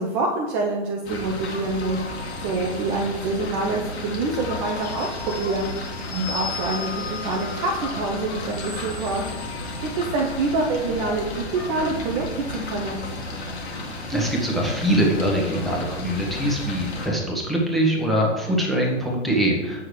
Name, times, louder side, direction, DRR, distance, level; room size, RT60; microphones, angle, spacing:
voice 1, 0.0-5.7 6.1-9.2 9.8-13.0, right 3 dB, 20° right, 0 dB, 0.5 m, -26 dB
sound 1, 1.0-17.1, left 2 dB, 60° left, 1.7 m, -33 dB
sound 2, 1.8-3.3 4.2-10.8, left 5 dB, 25° left, 1.1 m, -37 dB
voice 2, 14.1-19.8, right 1 dB, ahead, -3 dB, 1.2 m, -23 dB
7.8 x 6.2 x 3.2 m, 1.1 s
figure-of-eight pair, 115°, 37 cm